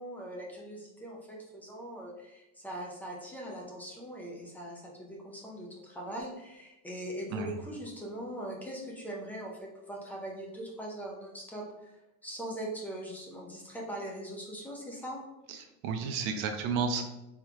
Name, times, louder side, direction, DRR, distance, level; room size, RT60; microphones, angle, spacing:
voice 1, 0.0-9.6 9.9-11.9 12.2-15.2, right 1 dB, 5° left, -2 dB, 0.6 m, -41 dB
voice 2, 15.5-17.0, right 5 dB, 50° right, 6 dB, 0.6 m, -32 dB
3.5 x 3.5 x 3.1 m, 0.95 s
cardioid pair, 160°, 35 cm